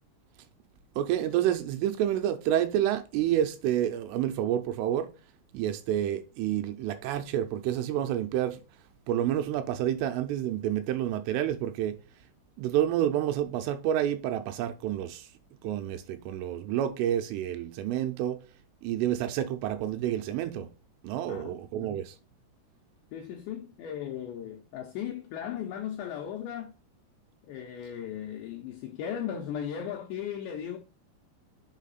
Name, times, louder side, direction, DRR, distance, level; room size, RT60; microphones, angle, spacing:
voice 1, 1.0-5.1 5.5-8.6 9.1-12.0 12.6-15.3 15.6-18.4 18.8-20.7 21.0-22.2, right 11 dB, 85° right, 3.1 m, -29 dB
voice 2, 21.3-22.0 23.1-26.7 27.4-30.8, left 9 dB, 85° left, 2.5 m, -37 dB
7.3 x 4.9 x 4.0 m
omnidirectional pair, 6.0 m